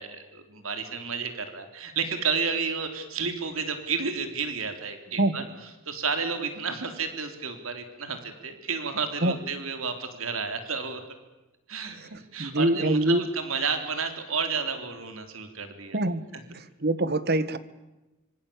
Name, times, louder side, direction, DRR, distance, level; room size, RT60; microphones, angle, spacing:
voice 1, 0.0-5.4 5.8-11.0 11.7-16.0, right 5 dB, 80° right, 8 dB, 3.4 m, -31 dB
voice 2, 12.0-13.3 15.9-16.2 16.5-17.6, right 1 dB, 50° right, 14 dB, 1.7 m, -25 dB
26.0 x 24.0 x 8.6 m, 1.0 s
head